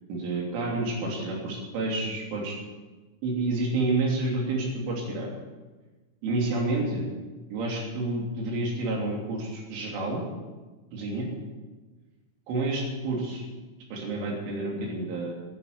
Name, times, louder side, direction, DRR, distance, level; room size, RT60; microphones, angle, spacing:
voice 1, 0.1-2.6 3.2-5.3 6.2-7.1 7.5-10.2 10.9-11.3 12.5-13.4 13.9-15.3, right 2 dB, 90° right, -1 dB, 5.6 m, -29 dB
12.5 x 9.3 x 9.7 m, 1.3 s
omnidirectional pair, 5.4 m